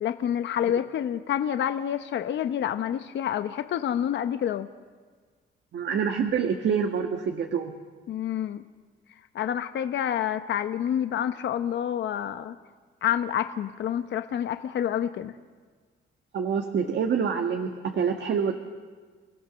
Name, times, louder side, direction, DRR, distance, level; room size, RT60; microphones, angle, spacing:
voice 1, 0.0-4.7 8.1-8.6 9.3-12.6 13.0-15.3, left 10 dB, 65° left, 9 dB, 0.9 m, -28 dB
voice 2, 5.7-7.7 16.3-18.5, right 6 dB, 60° right, 4 dB, 1.6 m, -26 dB
29.5 x 16.0 x 6.2 m, 1.5 s
cardioid pair, 90°, 20 cm